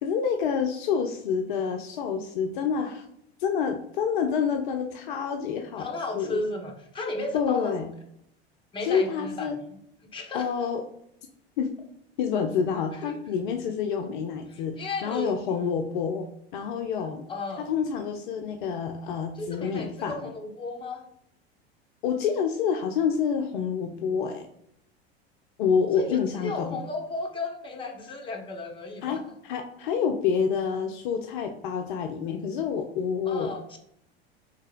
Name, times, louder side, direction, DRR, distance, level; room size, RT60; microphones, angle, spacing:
voice 1, 0.0-3.1 3.4-5.9 6.2-6.4 7.3-7.9 8.8-9.6 10.3-10.8 11.6-11.7 12.2-16.3 16.5-17.3 17.6-20.3 22.0-24.5 25.6-26.8 29.0-33.5, left 6 dB, 50° left, 4 dB, 0.5 m, -28 dB
voice 2, 5.8-7.8 8.7-9.6 10.1-10.7 13.0-13.2 14.5-15.3 17.3-17.7 19.3-21.1 25.9-29.2 33.3-33.8, left 2 dB, 15° left, 2 dB, 0.7 m, -34 dB
3.3 x 3.2 x 3.5 m, 0.74 s
figure-of-eight pair, 75°, 32 cm